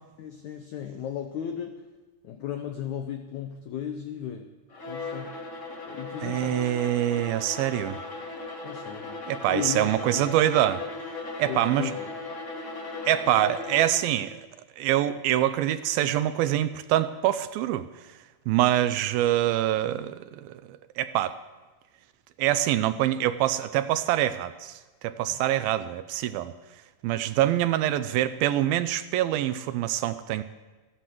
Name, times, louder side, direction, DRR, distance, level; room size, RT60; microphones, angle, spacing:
voice 1, 0.2-1.8 2.2-4.5 4.9-5.4 5.9-6.8 8.6-9.2 9.5-10.2 11.5-12.0 25.3-25.4, left 8 dB, 85° left, 6 dB, 1.6 m, -35 dB
Bowed string instrument, 4.7-14.2, left 3 dB, 40° left, 1.7 m, -37 dB
voice 2, 6.2-8.0 9.3-10.8 11.4-11.9 13.1-14.5 14.8-17.9 18.5-21.4 22.4-26.5 27.0-30.4, right 13 dB, 80° right, 12 dB, 2.2 m, -25 dB
14.5 x 9.9 x 7.6 m, 1.3 s
omnidirectional pair, 4.5 m